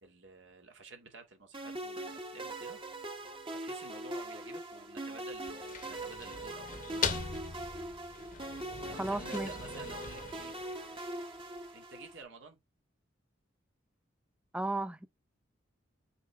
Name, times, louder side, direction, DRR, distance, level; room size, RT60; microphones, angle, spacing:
voice 1, 0.0-2.8 3.5-7.6 8.9-10.5 11.7-12.6, right 3 dB, 70° right, 2.0 m, -52 dB
sound 1, 1.5-12.2, right 2 dB, 25° right, 1.1 m, -42 dB
sound 2, 5.3-11.4, left 6 dB, 45° left, 1.0 m, -41 dB
voice 2, 8.9-9.5 14.5-15.1, right 2 dB, 5° right, 0.5 m, -34 dB
6.5 x 4.7 x 3.3 m
head